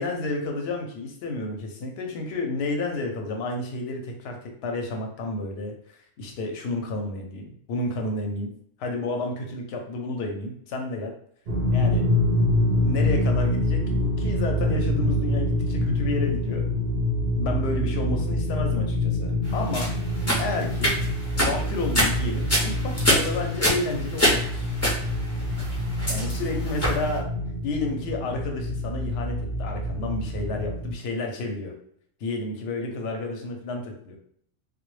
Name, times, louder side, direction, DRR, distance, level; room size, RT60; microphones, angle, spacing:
voice 1, 0.0-8.5 8.8-11.1 11.7-12.0 12.8-16.7 17.4-19.9 20.3-21.0 21.4-24.8 26.1-27.3 27.6-31.7 32.2-34.2, left 2 dB, 65° left, 2 dB, 0.7 m, -31 dB
sound 1, 11.5-30.9, left 1 dB, 60° right, 0.6 m, -26 dB
sound 2, 19.7-27.1, equal, 25° left, 0.3 m, -25 dB
2.1 x 2.1 x 3.0 m, 0.64 s
omnidirectional pair, 1.3 m